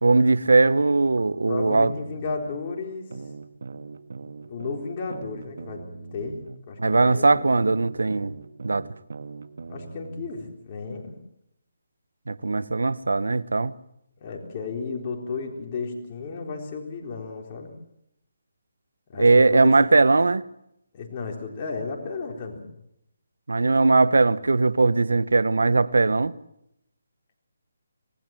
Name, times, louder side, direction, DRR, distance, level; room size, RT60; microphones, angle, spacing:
voice 1, 0.0-1.9 6.8-8.3 8.6-8.9 12.3-13.7 19.2-20.4 23.5-26.3, right 3 dB, 90° right, 1.0 m, -19 dB
voice 2, 1.5-3.1 4.5-5.8 6.1-7.6 9.7-11.2 14.2-17.7 19.1-19.9 20.9-22.7, left 4 dB, 30° left, 4.0 m, -33 dB
sound 1, 1.9-2.6 3.1-6.6 7.1-10.3, right 4 dB, 70° right, 1.8 m, -40 dB
26.5 x 19.0 x 7.6 m
hypercardioid pair, 160°, 0 cm